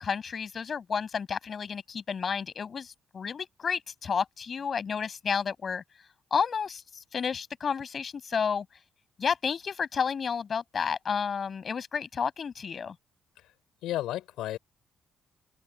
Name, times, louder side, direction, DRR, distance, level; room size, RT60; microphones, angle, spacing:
voice 1, 0.0-5.8 6.3-8.7 9.2-13.0, left 6 dB, 45° left, 5.9 m, -31 dB
voice 2, 13.8-14.6, left 14 dB, 90° left, 3.8 m, -33 dB
open air
cardioid pair, 90°, 0 cm